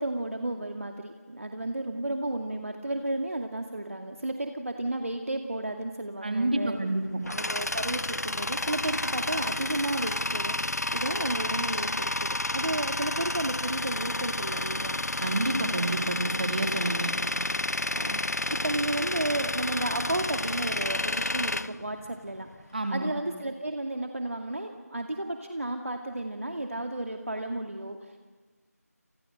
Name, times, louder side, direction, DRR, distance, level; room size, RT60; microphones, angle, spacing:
voice 1, 0.0-6.8 7.3-10.6 10.9-15.0 17.9-18.2 18.5-28.2, right 1 dB, 55° right, 4 dB, 2.3 m, -33 dB
voice 2, 6.2-7.3 15.2-17.1 22.7-23.1, right 2 dB, 35° right, 4 dB, 3.6 m, -29 dB
Tools, 6.8-22.6, left 2 dB, 75° left, 0.8 m, -30 dB
29.5 x 29.0 x 6.6 m, 1.4 s
figure-of-eight pair, 175°, 9 cm